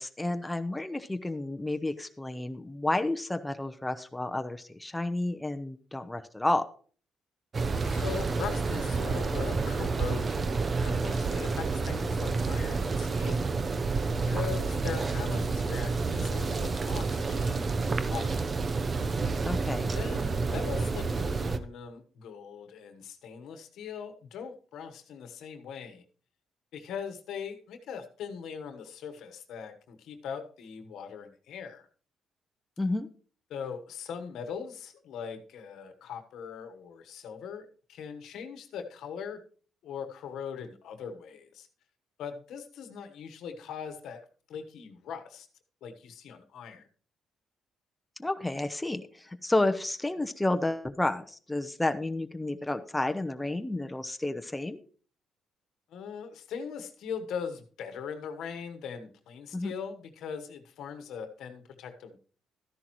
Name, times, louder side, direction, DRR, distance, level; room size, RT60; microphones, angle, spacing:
voice 1, 0.0-6.6 19.4-19.9 32.8-33.1 48.2-54.8 59.5-59.7, left 2 dB, 10° left, 7 dB, 0.8 m, -31 dB
sound 1, 7.5-21.6, right 4 dB, 35° right, 0.7 m, -29 dB
voice 2, 7.8-13.4 14.2-18.5 19.9-26.0 26.7-31.9 33.5-39.4 39.8-41.7 42.2-45.5 45.8-46.9 55.9-62.2, left 6 dB, 80° left, 7 dB, 1.2 m, -40 dB
12.5 x 10.5 x 3.0 m, 0.42 s
cardioid pair, 90°, 0 cm